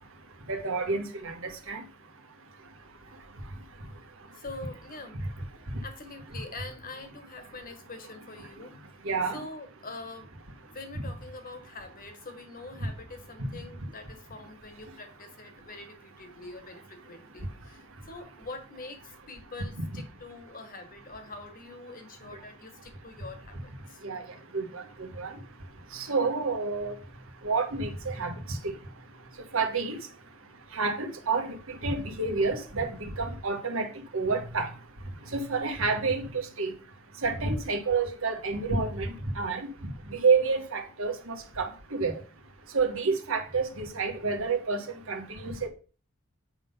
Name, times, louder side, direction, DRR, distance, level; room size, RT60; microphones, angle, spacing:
voice 1, 0.5-1.8 9.0-9.4 13.4-13.5 24.0-25.3 25.9-27.0 27.4-28.7 29.5-30.0 30.7-34.7 35.3-36.7 37.2-42.2 42.7-45.7, right 4 dB, 65° right, 1.5 m, -29 dB
voice 2, 4.3-5.2 5.8-8.8 9.3-10.3 10.6-24.0, left 3 dB, 40° left, 1.5 m, -44 dB
8.7 x 3.8 x 5.5 m
head